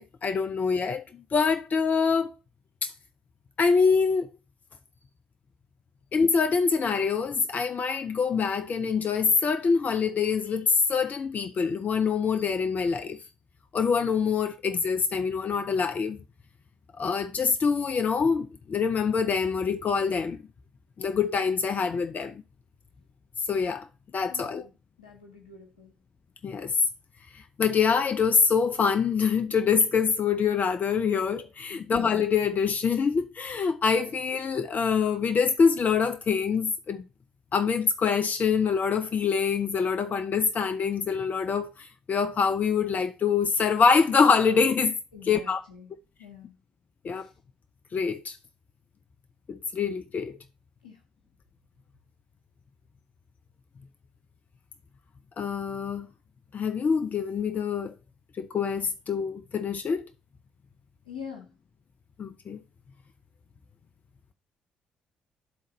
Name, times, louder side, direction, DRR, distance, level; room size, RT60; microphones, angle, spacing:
voice 1, 0.0-2.3 2.8-2.9 3.6-4.3 6.1-13.2 13.7-16.2 17.0-20.4 21.0-22.4 23.5-23.8 24.1-24.7 26.4-26.7 27.6-37.0 37.5-44.9 45.3-45.6 47.0-47.3 47.9-48.4 49.5-50.3 55.4-56.1 56.5-57.9 58.4-60.0 62.2-62.6, left 5 dB, 40° left, 0.7 m, -25 dB
voice 2, 24.3-24.7 25.0-26.0 31.7-31.9 45.1-45.9 46.2-46.6 47.1-47.3 50.8-51.0 61.0-61.6, left 6 dB, 85° left, 1.3 m, -45 dB
11.0 x 3.9 x 4.1 m
figure-of-eight pair, 45°, 4 cm